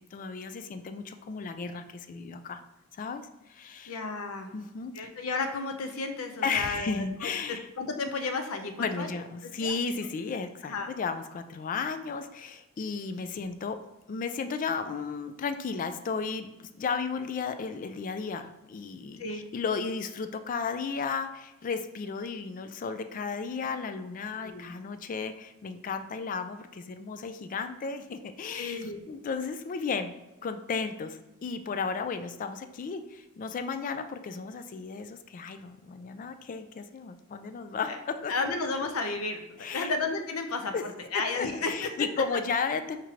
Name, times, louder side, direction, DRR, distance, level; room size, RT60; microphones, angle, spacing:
voice 1, 0.1-2.6 3.0-3.2 3.5-4.0 4.5-5.1 6.4-7.7 8.8-13.8 14.1-30.1 30.4-38.3 39.6-39.9 40.7-40.8 41.3-43.0, left 5 dB, 40° left, 9 dB, 0.3 m, -34 dB
voice 2, 3.9-4.5 4.9-9.1 9.4-9.7 10.7-10.9 19.2-19.4 24.4-24.7 28.5-29.0 37.8-38.0 38.3-40.7 41.0-41.9, left 3 dB, 80° left, 6 dB, 0.6 m, -33 dB
4.4 x 3.1 x 3.7 m, 1.0 s
head